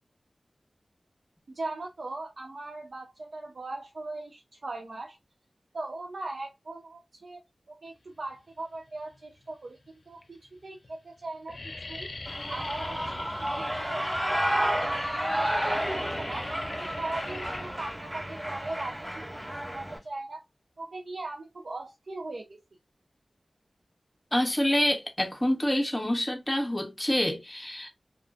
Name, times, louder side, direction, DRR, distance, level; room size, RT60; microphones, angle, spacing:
voice 1, 1.5-5.2 5.7-7.4 7.7-9.8 10.1-14.2 14.6-16.5 16.8-20.4 20.8-22.6, right 2 dB, 70° right, 0.4 m, -39 dB
sound 1, 8.9-9.5 10.1-10.2 10.5-10.9 11.1-20.1, left 2 dB, 65° left, 0.5 m, -42 dB
Shout / Cheering, 12.3-20.0, equal, 25° right, 1.2 m, -31 dB
voice 2, 24.3-27.9, left 1 dB, 15° left, 0.8 m, -27 dB
2.4 x 2.2 x 2.3 m
cardioid pair, 45°, 0 cm